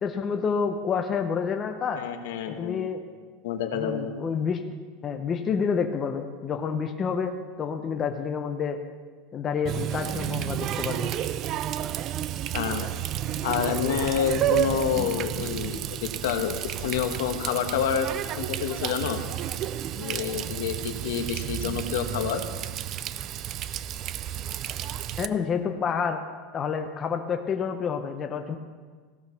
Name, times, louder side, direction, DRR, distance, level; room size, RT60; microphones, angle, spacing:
voice 1, 0.0-2.0 2.5-3.0 3.7-8.8 9.3-11.1 25.2-26.2 26.5-28.6, left 6 dB, 20° left, 5 dB, 0.6 m, -29 dB
voice 2, 1.9-2.9 3.4-4.1 12.5-12.9 13.4-18.1 18.4-19.2 20.0-22.4, left 8 dB, 75° left, 6 dB, 1.1 m, -28 dB
Water tap faucet, 9.7-25.3, right 12 dB, 30° right, 0.3 m, -31 dB
15.5 x 6.3 x 5.6 m, 1.5 s
supercardioid pair, 170°, 0 cm